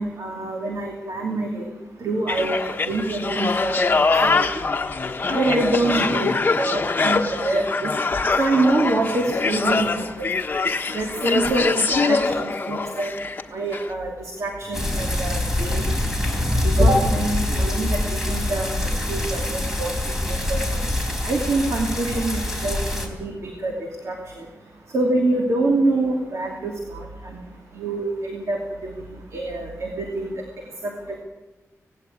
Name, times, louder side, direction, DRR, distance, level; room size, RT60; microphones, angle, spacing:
voice 1, 0.0-1.6 2.0-3.9 4.2-4.5 5.3-7.9 8.4-10.3 10.9-13.1 13.5-15.8 16.3-19.9 20.3-20.8 21.2-24.5 24.9-27.4 27.7-30.3 30.8-31.2, right 2 dB, 60° right, 1 dB, 2.7 m, -26 dB
sound 1, 2.3-13.4 13.7-13.9, left 4 dB, 35° left, 1.3 m, -23 dB
sound 2, 14.7-23.1, left 1 dB, 5° right, 4.1 m, -24 dB
18.5 x 17.0 x 8.5 m, 1.1 s
wide cardioid pair, 135°, 6 cm